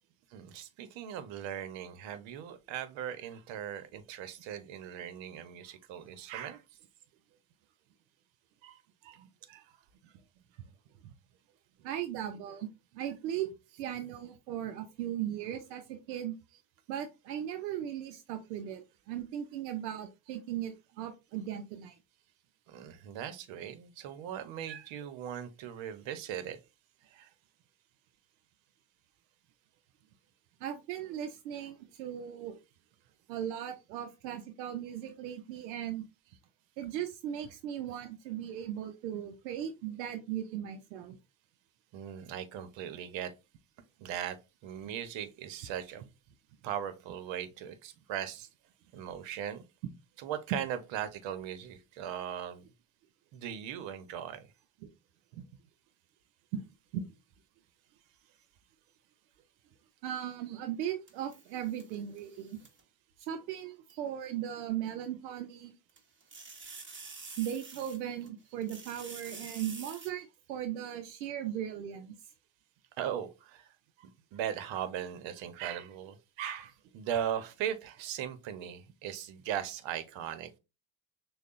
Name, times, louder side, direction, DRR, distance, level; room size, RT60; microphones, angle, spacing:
voice 1, 0.3-6.6 8.6-9.7 13.0-13.1 22.7-26.6 27.1-27.3 41.9-43.3 44.0-44.4 44.6-46.0 46.6-48.5 48.9-49.6 50.2-52.7 53.3-54.5 63.9-64.0 73.0-73.7 74.0-80.6, right 9 dB, 65° right, 1.0 m, -39 dB
voice 2, 11.8-12.7 12.9-13.5 13.8-16.3 16.9-22.0 30.6-32.5 33.3-36.1 36.8-41.2 54.8-54.9 55.3-55.4 56.5-56.6 56.9-57.0 60.0-62.6 63.2-65.7 67.4-72.3, right 10 dB, 90° right, 0.6 m, -38 dB
sound 1, 61.1-62.8 63.9-64.0 65.9-68.3 68.6-70.1, right 4 dB, 25° right, 1.3 m, -48 dB
6.5 x 2.4 x 2.5 m
hypercardioid pair, 70°, 49 cm